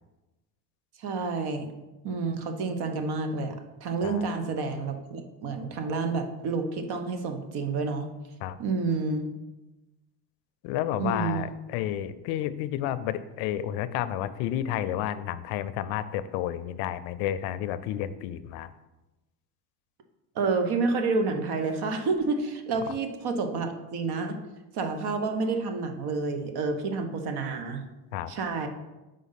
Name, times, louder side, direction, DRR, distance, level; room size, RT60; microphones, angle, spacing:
voice 1, 1.0-1.7 2.0-3.5 3.8-8.1 8.6-9.3 11.0-11.5 20.3-24.4 24.7-27.8 28.3-28.7, right 4 dB, 55° right, 6 dB, 1.0 m, -29 dB
voice 2, 10.6-18.7 28.1-28.3, left 11 dB, 75° left, 14 dB, 0.5 m, -31 dB
5.0 x 3.9 x 5.7 m, 1.0 s
supercardioid pair, 105°, 47 cm